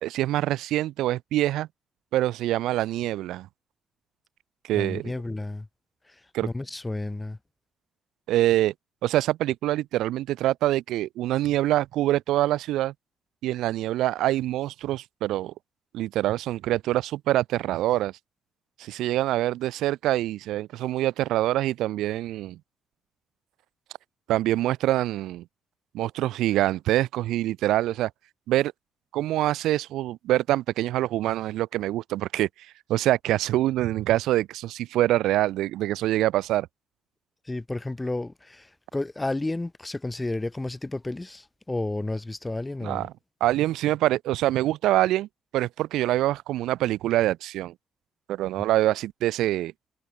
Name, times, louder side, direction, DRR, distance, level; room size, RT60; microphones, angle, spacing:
voice 1, 0.0-1.7 2.1-3.5 4.7-5.1 6.3-6.5 8.3-8.7 9.0-12.9 13.4-15.5 15.9-18.1 18.8-22.6 24.3-25.4 25.9-28.1 28.5-28.7 29.1-32.5 32.9-36.7 42.8-43.1 43.4-45.3 45.5-47.7 48.3-49.7, right 14 dB, 90° right, 0.9 m, -25 dB
voice 2, 4.7-5.7 6.1-6.2 6.4-7.4 37.4-43.1, left 2 dB, 15° left, 3.5 m, -31 dB
cardioid pair, 90°, 0 cm